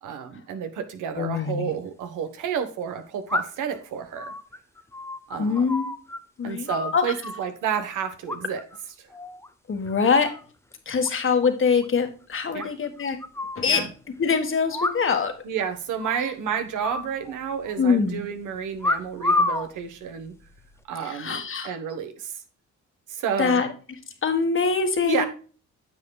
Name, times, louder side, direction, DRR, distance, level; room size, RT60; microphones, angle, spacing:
voice 1, 0.0-4.3 5.3-5.7 6.4-8.6 9.0-9.1 12.5-12.7 13.7-13.9 15.4-20.3 20.9-22.4 23.1-23.6 25.0-25.3, right 7 dB, 85° right, 8 dB, 1.4 m, -30 dB
voice 2, 1.2-1.7 5.4-5.9 6.4-7.1 9.7-10.3 10.8-13.2 13.5-13.9 14.2-15.3 17.8-18.2 21.1-21.7 23.4-23.7 24.2-25.3, left 5 dB, 40° left, 6 dB, 1.7 m, -23 dB
sound 1, 1.5-1.6 3.3-3.7 4.2-6.2 6.4-7.5 8.3-8.8 9.1-9.5 9.9-10.4 10.7-10.8 11.0-11.1 11.4-11.5 11.8-11.9 12.6-13.6 14.7-15.3 15.6-15.7 16.0-16.3 16.8-17.7 18.8-19.7 20.4-20.8, left 2 dB, 10° left, 0.8 m, -29 dB
9.4 x 7.1 x 2.4 m, 0.38 s
cardioid pair, 90°, 30 cm